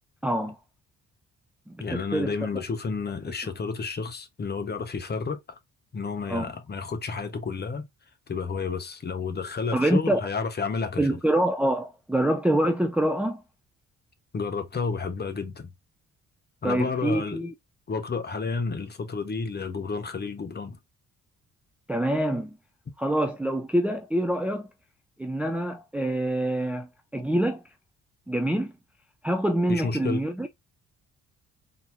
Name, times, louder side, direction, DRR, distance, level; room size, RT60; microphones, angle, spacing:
voice 1, 0.2-0.6 1.7-2.5 6.3-6.5 9.7-10.2 11.0-13.4 16.6-17.5 21.9-22.6 23.0-24.7 25.2-27.6 28.3-28.7 29.2-30.5, right 1 dB, 5° right, 0.4 m, -26 dB
voice 2, 1.8-5.4 5.9-7.9 8.3-11.2 14.3-15.7 16.6-17.4 17.9-20.8 29.7-30.2, left 4 dB, 35° left, 1.0 m, -31 dB
4.0 x 2.9 x 2.6 m
cardioid pair, 90°, 30 cm